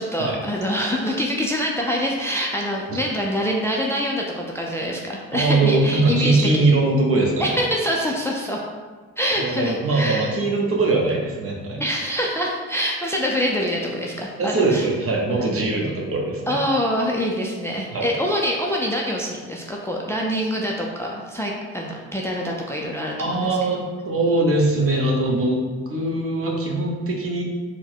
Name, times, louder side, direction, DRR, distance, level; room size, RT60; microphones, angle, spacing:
voice 1, 0.0-6.7 7.4-8.6 9.2-10.4 11.8-14.9 15.3-15.5 16.5-23.7, equal, 10° left, -2 dB, 0.5 m, -25 dB
voice 2, 5.3-7.6 9.4-11.8 14.4-16.6 17.9-18.2 23.2-27.4, right 2 dB, 45° right, -1 dB, 1.0 m, -21 dB
4.4 x 2.2 x 4.4 m, 1.4 s
cardioid pair, 90°, 30 cm